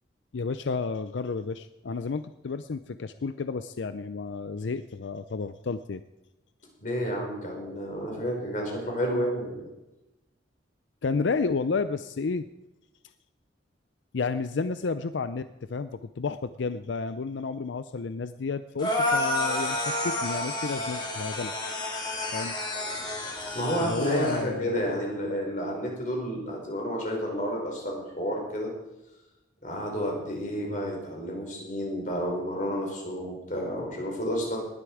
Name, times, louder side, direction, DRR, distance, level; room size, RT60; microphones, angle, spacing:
voice 1, 0.3-6.0 11.0-12.5 14.1-21.5 22.3-22.6 23.8-25.0, left 4 dB, 85° left, 12 dB, 0.5 m, -31 dB
voice 2, 6.8-9.7 23.5-28.7 29.6-34.6, equal, 45° left, 0 dB, 5.2 m, -30 dB
sound 1, 18.8-24.4, left 1 dB, 25° left, 3.4 m, -30 dB
19.5 x 11.0 x 4.9 m, 0.99 s
head